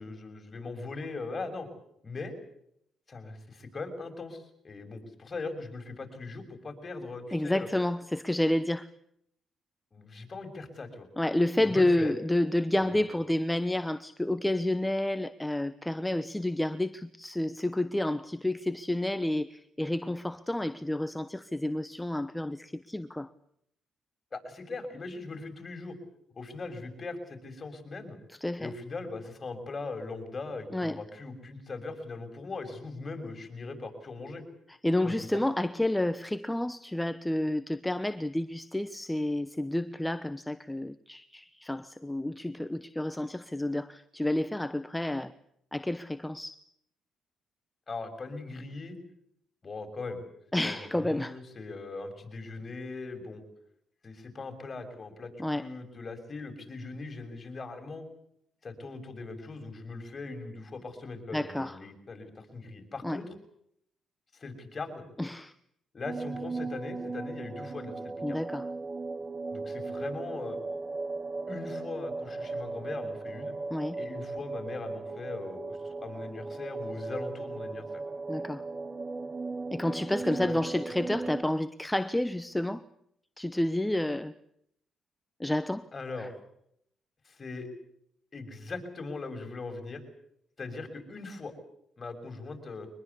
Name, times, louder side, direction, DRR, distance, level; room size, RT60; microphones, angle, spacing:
voice 1, 0.0-1.7 2.0-2.3 3.1-7.7 9.9-11.1 11.7-12.1 12.9-13.0 24.3-25.9 26.3-28.2 28.6-34.4 35.0-35.4 47.9-49.0 49.6-50.2 50.6-53.4 54.0-58.0 58.6-63.2 64.3-65.0 65.9-68.4 69.5-70.6 71.5-73.5 74.0-78.0 80.4-80.5 81.1-81.2 85.9-86.3 87.2-87.7 88.3-90.0 90.6-91.5 92.0-92.9, left 3 dB, 35° left, 6.7 m, -40 dB
voice 2, 7.3-8.9 11.2-23.3 28.4-28.7 30.7-31.0 34.7-45.3 45.7-46.6 50.5-51.4 55.4-55.7 61.3-61.8 63.0-63.2 65.2-65.5 68.2-68.7 73.7-74.0 78.3-78.6 79.7-82.9 83.4-84.3 85.4-85.9 86.2-86.3, left 1 dB, 10° left, 0.9 m, -30 dB
sound 1, 66.0-81.4, right 3 dB, 35° right, 1.3 m, -37 dB
24.0 x 20.5 x 8.5 m
cardioid pair, 90°, 0 cm